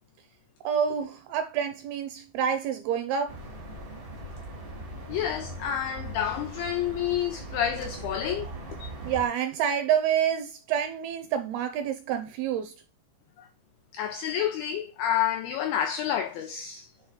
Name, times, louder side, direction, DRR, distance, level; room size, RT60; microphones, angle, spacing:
voice 1, 0.6-3.4 9.0-12.7, right 8 dB, 85° right, 2.3 m, -28 dB
sound 1, 3.3-9.3, right 1 dB, 60° right, 0.5 m, -40 dB
voice 2, 5.1-8.5 13.9-16.9, left 10 dB, 85° left, 2.1 m, -29 dB
9.7 x 3.3 x 4.8 m
omnidirectional pair, 5.0 m